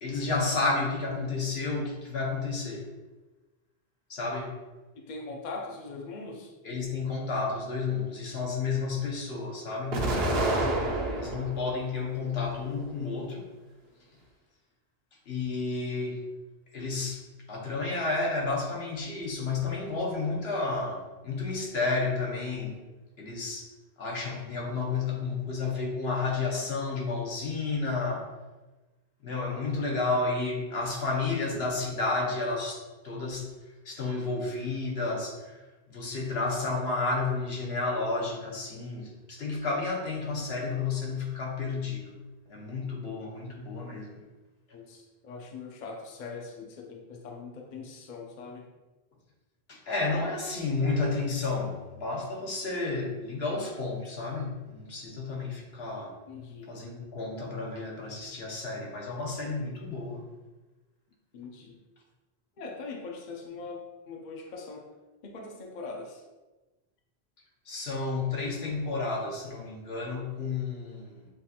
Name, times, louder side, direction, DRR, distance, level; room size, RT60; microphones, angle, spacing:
voice 1, 0.0-2.9 4.1-4.5 6.6-10.0 11.1-13.4 15.3-16.2 16.7-17.2 17.5-22.8 23.2-23.7 24.0-28.3 29.2-33.5 33.8-35.6 35.9-42.1 42.5-44.2 49.7-56.1 56.7-60.2 67.7-71.3, left 3 dB, 75° left, -2 dB, 1.2 m, -31 dB
voice 2, 4.9-6.5 11.1-11.5 44.7-48.7 56.3-56.7 61.3-61.8 62.6-64.9 65.2-66.2, left 3 dB, 50° left, 1 dB, 0.7 m, -41 dB
Explosion, 9.9-11.6 12.1-13.0, right 1 dB, 70° right, 1.0 m, -29 dB
7.2 x 2.5 x 2.8 m, 1.2 s
omnidirectional pair, 1.1 m